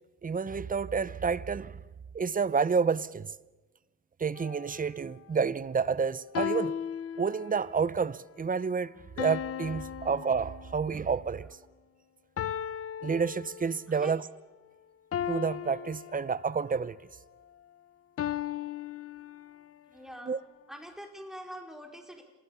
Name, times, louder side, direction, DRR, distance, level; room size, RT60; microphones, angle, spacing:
voice 1, 0.2-1.8 2.1-3.3 4.2-6.8 7.2-11.5 13.0-14.2 15.3-17.0 20.3-20.4, right 5 dB, 30° right, 0.7 m, -29 dB
sound 1, 4.3-4.8 6.3-7.8 9.2-11.0 12.4-14.0 15.1-16.7 18.2-19.8, left 10 dB, 50° left, 0.7 m, -36 dB
voice 2, 19.9-20.4 20.7-22.2, equal, ahead, 4.7 m, -44 dB
27.5 x 20.0 x 7.1 m
cardioid pair, 90°, 30 cm